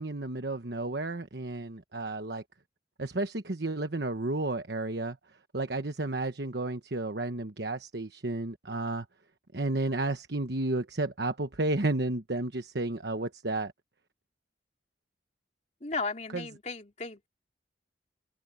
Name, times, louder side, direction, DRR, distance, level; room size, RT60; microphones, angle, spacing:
voice 1, 0.0-2.4 3.0-5.2 5.5-9.1 9.5-13.7 16.3-16.4, right 2 dB, 65° right, 1.2 m, -32 dB
voice 2, 15.8-17.3, left 3 dB, 40° left, 3.6 m, -35 dB
open air
head